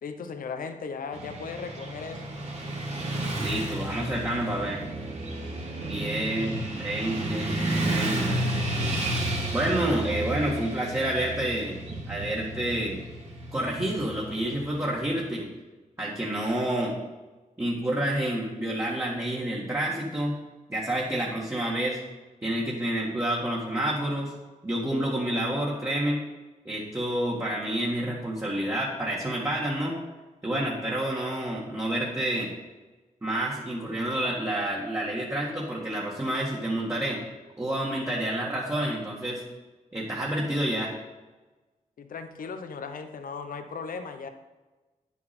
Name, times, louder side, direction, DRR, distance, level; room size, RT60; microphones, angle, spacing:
voice 1, 0.0-2.2 42.0-44.3, left 5 dB, 85° left, 8 dB, 0.9 m, -37 dB
Motorcycle / Traffic noise roadway noise, 1.1-15.2, right 1 dB, 50° right, 2.3 m, -32 dB
voice 2, 3.4-4.8 5.9-8.5 9.5-11.8 12.1-13.0 13.5-15.5 16.0-16.9 17.6-20.3 20.7-22.0 22.4-24.3 24.6-26.2 26.7-30.0 30.4-32.5 33.2-37.2 37.6-39.4 39.9-40.9, right 1 dB, 20° right, -5 dB, 1.9 m, -29 dB
9.9 x 8.5 x 4.4 m, 1.2 s
wide cardioid pair, 95°, 14 cm